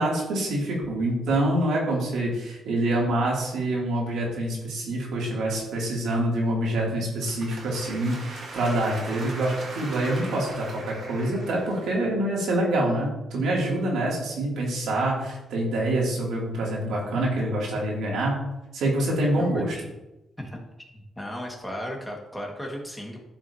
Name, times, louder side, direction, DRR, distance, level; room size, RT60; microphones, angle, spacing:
voice 1, 0.0-18.4 18.7-19.8, right 1 dB, 85° right, -3 dB, 2.7 m, -26 dB
sound 1, 7.2-12.0, right 2 dB, 60° right, 2.0 m, -39 dB
voice 2, 19.3-19.8 20.4-20.6 20.9-23.2, equal, 5° left, 0 dB, 1.8 m, -35 dB
11.5 x 6.0 x 2.8 m, 0.98 s
cardioid pair, 110°, 0 cm